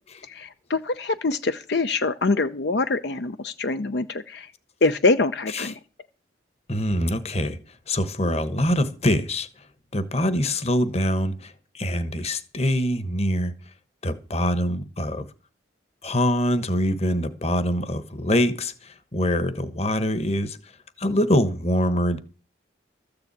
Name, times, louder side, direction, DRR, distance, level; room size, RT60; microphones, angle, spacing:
voice 1, 0.2-4.5 4.8-5.8, left 3 dB, 60° left, 0.6 m, -24 dB
voice 2, 6.7-7.6 7.9-9.7 9.9-13.5 14.0-15.3 16.0-20.7 21.0-22.2, equal, 35° left, 1.2 m, -24 dB
14.0 x 6.9 x 8.4 m
head